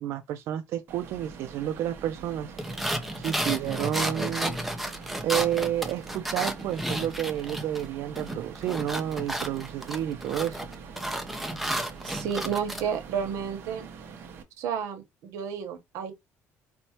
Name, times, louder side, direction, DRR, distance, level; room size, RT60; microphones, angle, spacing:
voice 1, 0.0-2.5 3.2-4.6 5.2-10.6, right 11 dB, 65° right, 0.3 m, -30 dB
sound 1, 0.9-14.4, right 6 dB, 45° right, 0.8 m, -44 dB
sound 2, 2.6-7.9 8.2-12.8, equal, ahead, 0.4 m, -32 dB
voice 2, 12.0-13.9 14.6-16.1, right 7 dB, 80° right, 1.0 m, -31 dB
4.3 x 2.1 x 2.9 m
cardioid pair, 165°, 5 cm